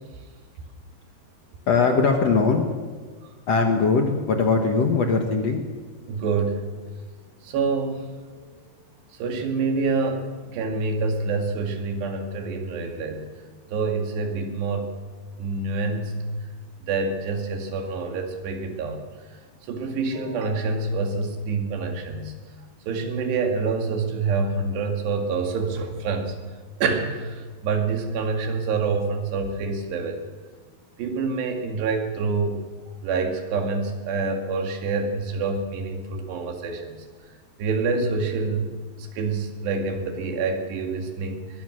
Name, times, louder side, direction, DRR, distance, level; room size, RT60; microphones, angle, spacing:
voice 1, 1.7-2.6 3.5-5.6, left 4 dB, 55° left, 4 dB, 1.9 m, -20 dB
voice 2, 6.1-6.6 7.4-8.1 9.2-13.2 13.7-14.9 15.4-16.3 16.8-19.0 19.7-22.3 22.9-26.4 26.8-30.2 31.0-32.6 33.0-37.0 37.6-38.7 39.0-41.6, right 4 dB, 85° right, 4 dB, 4.4 m, -26 dB
22.5 x 20.0 x 6.5 m, 1.4 s
omnidirectional pair, 4.7 m